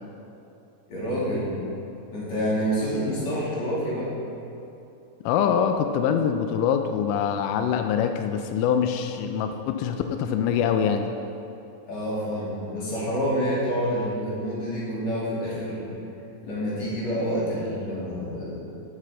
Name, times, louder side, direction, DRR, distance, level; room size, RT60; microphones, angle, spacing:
voice 1, 0.9-1.5 2.1-4.1 11.8-15.9 16.4-18.5, equal, 50° left, -8 dB, 3.8 m, -28 dB
voice 2, 5.3-11.1, left 7 dB, 85° left, 6 dB, 1.8 m, -24 dB
16.0 x 6.6 x 3.8 m, 2.8 s
omnidirectional pair, 4.2 m